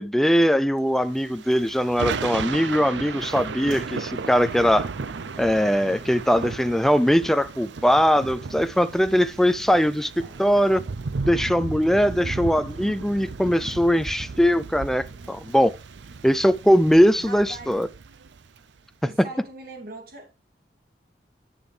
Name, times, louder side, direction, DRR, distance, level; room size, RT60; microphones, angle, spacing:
voice 1, 0.0-4.9 5.4-10.1 10.4-10.8 11.3-15.7 16.2-17.9, equal, ahead, 0.4 m, -21 dB
Thunder / Rain, 1.1-18.6, right 4 dB, 85° right, 0.6 m, -35 dB
voice 2, 9.7-10.5 17.2-17.8 19.0-20.4, right 2 dB, 55° right, 2.6 m, -41 dB
10.0 x 6.8 x 3.3 m
head